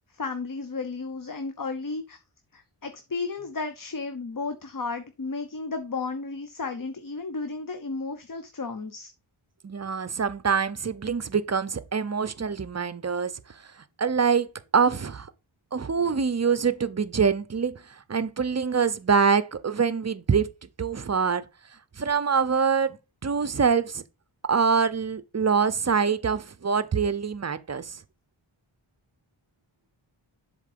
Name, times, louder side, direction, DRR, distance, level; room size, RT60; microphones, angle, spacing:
voice 1, 0.1-2.2 2.5-9.1, left 4 dB, 45° left, 0.8 m, -33 dB
voice 2, 9.6-13.3 14.0-14.5 14.7-15.3 15.7-17.8 18.1-20.5 20.8-21.4 22.0-23.0 23.2-24.0 24.5-28.0, right 6 dB, 35° right, 0.5 m, -24 dB
7.3 x 3.7 x 5.0 m
wide cardioid pair, 80°, 49 cm